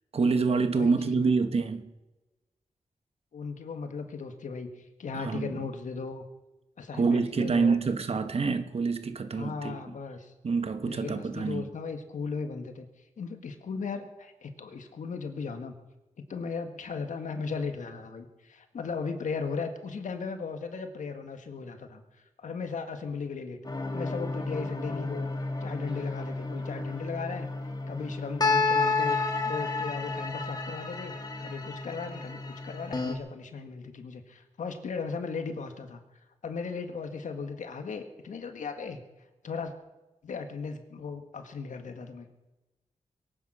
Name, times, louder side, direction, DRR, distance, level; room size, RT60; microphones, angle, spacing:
voice 1, 0.1-1.9 5.1-5.6 6.9-9.8 10.4-11.7, right 4 dB, 50° right, 1.3 m, -27 dB
voice 2, 0.8-1.2 3.3-6.2 6.8-7.8 9.4-10.3 10.9-12.9 13.2-15.7 16.3-22.0 22.4-23.6 23.9-27.5 27.9-29.2 29.4-31.1 31.4-36.0 36.4-39.0 39.4-39.7 40.2-42.3, left 5 dB, 75° left, 1.7 m, -37 dB
astral-destiny-cosmos, 23.6-33.1, left 3 dB, 30° left, 2.1 m, -31 dB
22.5 x 9.2 x 6.2 m
cardioid pair, 85°, 13 cm